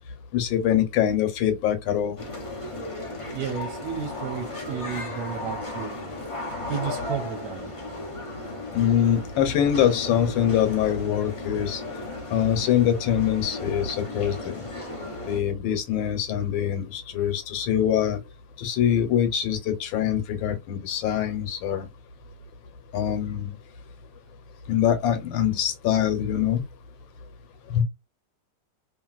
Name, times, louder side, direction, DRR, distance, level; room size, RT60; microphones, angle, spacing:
voice 1, 0.3-2.2 8.7-11.8 12.3-14.6 15.2-18.2 18.6-21.9 22.9-23.5 24.7-26.6 27.7-27.8, left 10 dB, 80° left, 1.5 m, -24 dB
sound 1, 2.2-15.4, left 2 dB, 50° left, 0.3 m, -35 dB
voice 2, 3.3-6.0 6.7-7.7, right 8 dB, 65° right, 1.1 m, -32 dB
2.9 x 2.8 x 2.3 m
omnidirectional pair, 2.1 m